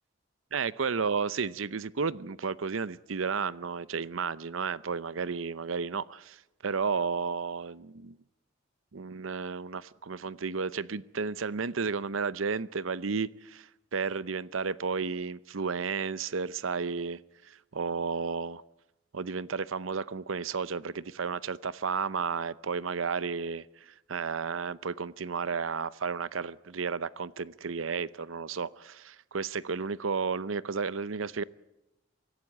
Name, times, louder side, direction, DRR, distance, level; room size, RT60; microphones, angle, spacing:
voice 1, 0.5-8.2 8.9-18.6 19.1-31.4, right 5 dB, 85° right, 0.7 m, -33 dB
24.5 x 16.5 x 8.6 m
head